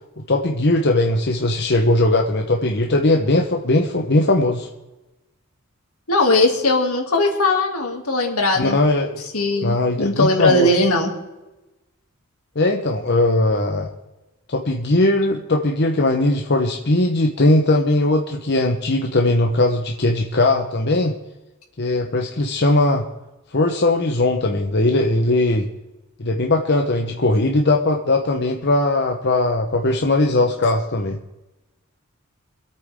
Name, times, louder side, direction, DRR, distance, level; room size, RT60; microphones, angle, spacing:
voice 1, 0.3-4.7 8.6-9.2 9.6-10.7 12.5-13.9 14.5-21.1 21.8-23.0 23.5-25.7 26.2-31.2, left 2 dB, 50° left, 2 dB, 1.0 m, -19 dB
voice 2, 6.1-8.8 9.3-11.1, left 2 dB, 80° left, 2 dB, 2.7 m, -19 dB
25.0 x 8.9 x 3.7 m, 1.0 s
head